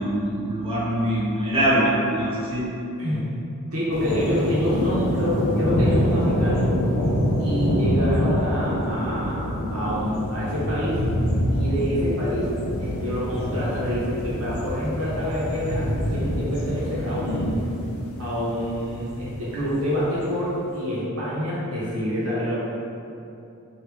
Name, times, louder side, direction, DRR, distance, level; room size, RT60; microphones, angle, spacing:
voice 1, 0.0-2.6, right 1 dB, 25° right, -9 dB, 0.7 m, -23 dB
voice 2, 3.7-6.8 7.4-11.0 11.5-12.5 12.8-17.6 18.2-22.6, equal, 85° right, -8 dB, 1.1 m, -27 dB
sound 1, 3.9-20.0, equal, 65° left, 0.5 m, -26 dB
3.2 x 2.6 x 3.4 m, 2.7 s
head